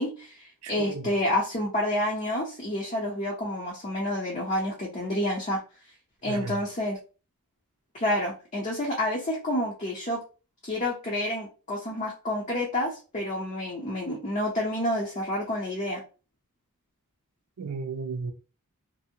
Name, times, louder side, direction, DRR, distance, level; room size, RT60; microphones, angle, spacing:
voice 1, 0.0-5.6 6.2-7.0 7.9-10.2 10.6-16.0, left 1 dB, 35° left, 0.6 m, -29 dB
voice 2, 0.6-1.1 6.3-6.6 17.6-18.3, right 4 dB, 80° right, 0.5 m, -34 dB
2.7 x 2.7 x 2.7 m
head